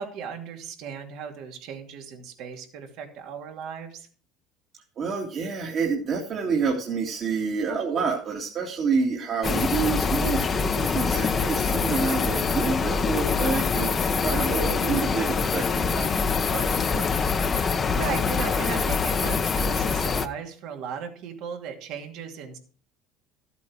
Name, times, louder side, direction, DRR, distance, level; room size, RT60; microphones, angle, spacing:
voice 1, 0.0-4.1 7.7-7.8 11.1-11.4 17.9-22.6, right 7 dB, 65° right, 4 dB, 2.5 m, -36 dB
voice 2, 5.0-17.1, right 5 dB, 45° right, -1 dB, 2.3 m, -28 dB
sound 1, 9.4-20.3, left 5 dB, 30° left, 1.0 m, -24 dB
13.5 x 8.4 x 4.6 m, 0.42 s
supercardioid pair, 110°, 0 cm